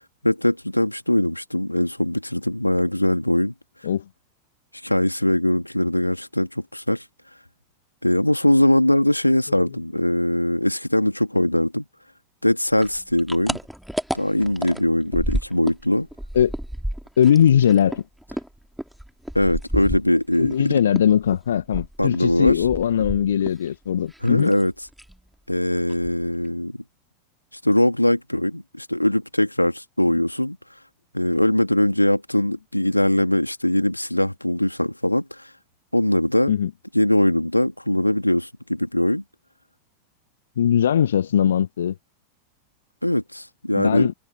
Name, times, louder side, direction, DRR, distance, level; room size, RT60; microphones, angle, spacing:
voice 1, 0.0-3.5 4.8-7.0 8.0-11.8 12.4-13.6 14.1-16.1 19.3-20.8 22.0-22.6 24.2-24.7 25.5-26.8 27.6-30.6 31.1-35.2 35.9-36.5 36.9-39.2 43.0-44.1, left 1 dB, 85° left, 2.5 m, -21 dB
sound 1, 12.8-15.8 16.1-20.6 20.9-23.7 23.9-24.6 24.9-25.2 25.5-25.6 25.9-26.5, equal, ahead, 2.6 m, -31 dB
voice 2, 17.2-18.0 20.4-24.5 36.5-36.7 40.6-41.9 43.7-44.1, left 9 dB, 65° left, 1.1 m, -20 dB
figure-of-eight pair, 90°, 0 cm